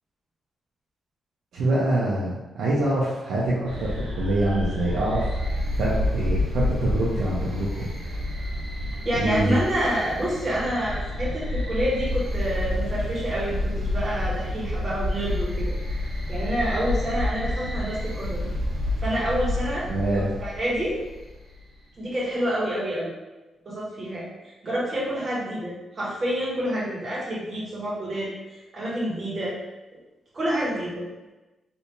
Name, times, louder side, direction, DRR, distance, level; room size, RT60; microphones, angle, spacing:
voice 1, 1.5-7.7 8.0-8.1 9.2-9.6 19.9-20.3, right 1 dB, 85° right, -7 dB, 0.7 m, -25 dB
sound 1, 3.7-21.6, left 1 dB, 65° right, 1.1 m, -29 dB
voice 2, 9.0-18.4 19.0-19.9 20.2-21.0 22.0-23.1 23.6-24.3 24.6-29.5 30.3-31.0, equal, 30° right, -7 dB, 1.3 m, -28 dB
3.4 x 2.7 x 3.0 m, 1.1 s
wide cardioid pair, 145°, 0 cm